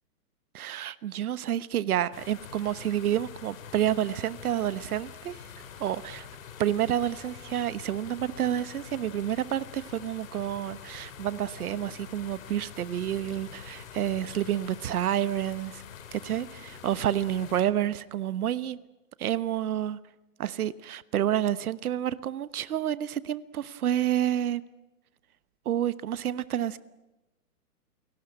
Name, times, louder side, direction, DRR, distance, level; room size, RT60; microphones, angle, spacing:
voice 1, 0.5-5.4 5.8-6.3 6.6-15.8 16.1-18.8 19.2-20.0 20.4-24.6 25.6-26.8, right 11 dB, 70° right, 17 dB, 1.2 m, -29 dB
sound 1, 2.1-17.6, left 7 dB, 55° left, 4.1 m, -46 dB
29.5 x 18.5 x 8.8 m, 1.0 s
hypercardioid pair, 135°, 46 cm